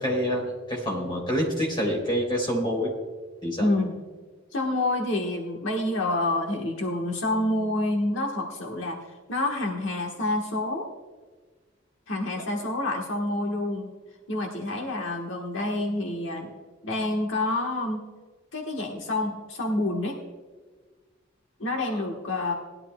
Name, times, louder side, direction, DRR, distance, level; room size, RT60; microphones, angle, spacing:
voice 1, 0.0-2.9 3.4-3.7, equal, 25° left, -1 dB, 3.3 m, -27 dB
voice 2, 3.6-4.0 4.5-10.9 12.1-13.9 14.3-16.5 16.8-18.0 18.5-20.2 21.6-22.5, left 2 dB, 75° left, 1 dB, 1.4 m, -28 dB
19.0 x 11.5 x 2.3 m, 1.4 s
head